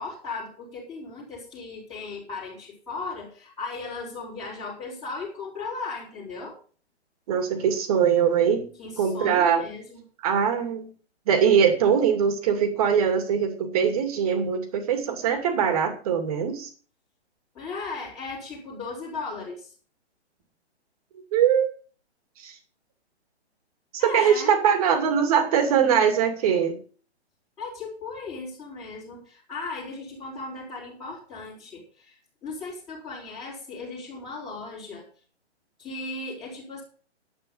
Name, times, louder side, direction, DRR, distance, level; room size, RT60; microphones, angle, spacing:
voice 1, 0.0-6.6 8.8-10.0 17.5-19.7 24.0-24.6 27.6-32.2 32.4-35.1 35.8-36.8, left 3 dB, 10° left, -7 dB, 3.2 m, -36 dB
voice 2, 7.3-8.7 9.0-9.6 10.2-10.9 11.3-16.7 21.3-21.7 22.4-22.5 23.9-26.8, right 7 dB, 35° right, 6 dB, 2.5 m, -22 dB
11.0 x 8.6 x 5.5 m, 0.41 s
hypercardioid pair, 160°, 34 cm